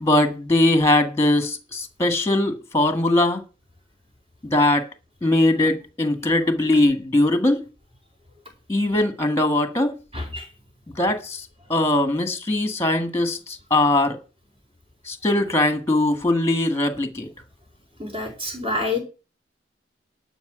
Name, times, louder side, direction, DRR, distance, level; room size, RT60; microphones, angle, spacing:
voice 1, 0.0-3.4 4.4-4.9 5.2-7.6 8.7-9.9 11.0-11.4 11.7-14.2 15.1-17.3, left 2 dB, 15° left, 1.6 m, -20 dB
voice 2, 10.1-10.5 18.0-19.0, left 2 dB, 35° right, 4.5 m, -27 dB
12.0 x 5.5 x 7.9 m
head